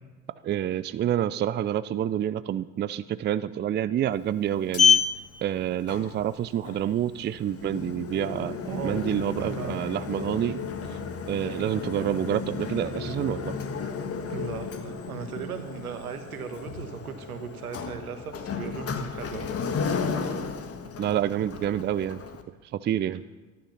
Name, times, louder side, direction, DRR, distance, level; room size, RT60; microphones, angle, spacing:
voice 1, 0.4-5.0 5.4-8.6 8.8-10.6 11.3-13.5 21.0-22.2 22.7-23.2, right 11 dB, 25° right, 15 dB, 0.5 m, -28 dB
Sliding door, 4.1-22.4, left 6 dB, 35° left, 1.5 m, -31 dB
voice 2, 8.6-9.0 9.4-9.8 14.3-19.5, right 7 dB, 85° right, 7 dB, 1.5 m, -37 dB
13.0 x 11.0 x 5.8 m, 1.2 s
hypercardioid pair, 70°, 42 cm